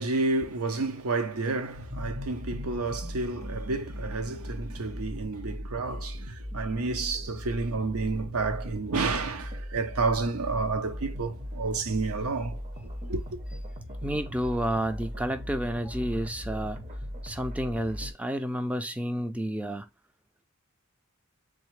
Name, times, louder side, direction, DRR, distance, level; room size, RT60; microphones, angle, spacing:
voice 1, 0.0-12.6 13.1-13.4, right 3 dB, 70° right, 0.7 m, -30 dB
sound 1, 1.7-18.1, equal, 35° right, 0.7 m, -38 dB
voice 2, 14.0-16.8 17.2-19.9, equal, 5° right, 0.4 m, -30 dB
3.6 x 3.5 x 3.1 m
head